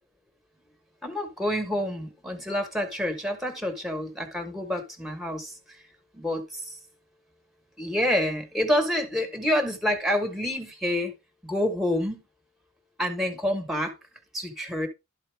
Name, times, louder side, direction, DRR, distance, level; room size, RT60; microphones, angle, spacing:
voice 1, 1.0-5.8 6.1-6.8 7.8-11.1 11.4-12.2 13.0-14.0 14.3-14.9, left 1 dB, ahead, 1.1 m, -28 dB
12.0 x 4.2 x 3.3 m
head